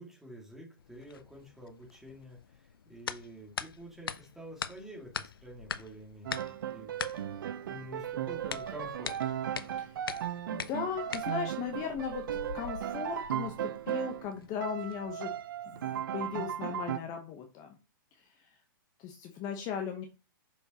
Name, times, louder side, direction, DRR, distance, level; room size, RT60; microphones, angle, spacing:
voice 1, 0.0-7.3 7.6-9.1, equal, 5° right, -3 dB, 2.3 m, -48 dB
sound 1, 0.8-15.4, left 7 dB, 90° left, 0.5 m, -44 dB
Piano, 6.2-14.3 14.6-17.0, right 10 dB, 70° right, 0.5 m, -36 dB
voice 2, 10.5-15.3 15.6-17.8 18.1-18.5 19.0-20.1, left 7 dB, 35° left, 4 dB, 1.0 m, -38 dB
6.6 x 4.9 x 2.9 m, 0.31 s
hypercardioid pair, 135°, 12 cm